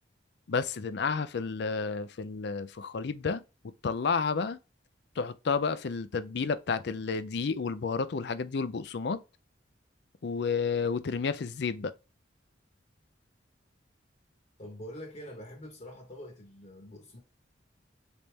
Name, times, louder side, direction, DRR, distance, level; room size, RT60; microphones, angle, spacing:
voice 1, 0.5-3.4 3.8-4.6 5.2-9.2 10.2-11.9, left 5 dB, 65° left, 0.5 m, -31 dB
voice 2, 14.6-17.2, equal, 40° left, 1.0 m, -45 dB
4.0 x 3.5 x 3.2 m
head